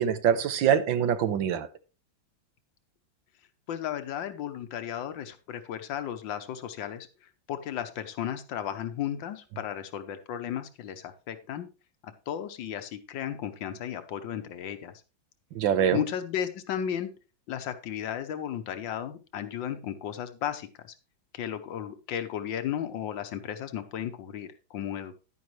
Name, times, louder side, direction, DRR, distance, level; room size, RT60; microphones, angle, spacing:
voice 1, 0.0-1.7 15.5-16.0, right 8 dB, 70° right, 1.5 m, -24 dB
voice 2, 3.7-7.1 7.5-11.7 12.3-14.9 15.9-17.1 17.5-20.7 21.3-25.2, left 9 dB, 70° left, 1.5 m, -34 dB
10.5 x 9.5 x 3.1 m
omnidirectional pair, 2.2 m